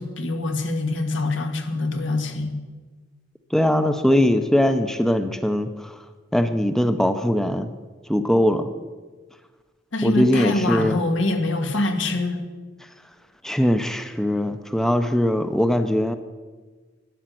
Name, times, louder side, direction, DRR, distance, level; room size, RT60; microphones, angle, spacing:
voice 1, 0.0-2.5 9.9-12.4, left 2 dB, 85° left, 5 dB, 1.7 m, -24 dB
voice 2, 3.5-6.0 6.3-7.7 8.1-8.7 10.0-11.0 13.4-16.2, left 1 dB, 5° left, 9 dB, 0.6 m, -21 dB
11.0 x 10.0 x 7.7 m, 1.4 s
head